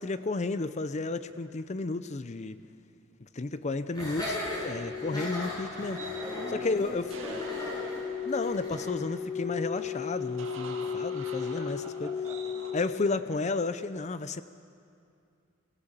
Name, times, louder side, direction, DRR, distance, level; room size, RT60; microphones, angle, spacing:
voice 1, 0.0-2.6 3.3-6.0 6.5-7.1 8.2-12.1 12.7-14.4, left 3 dB, 35° left, 13 dB, 0.6 m, -32 dB
sound 1, 3.9-13.0, left 7 dB, 80° left, 7.6 m, -36 dB
Laughter, 3.9-8.9, left 1 dB, 20° left, 7.7 m, -37 dB
sound 2, 5.0-12.8, right 3 dB, 80° right, 2.0 m, -47 dB
voice 2, 6.1-7.9 10.8-10.9 11.4-12.4, right 1 dB, 15° right, -1 dB, 2.2 m, -44 dB
25.0 x 15.5 x 7.4 m, 2.4 s
head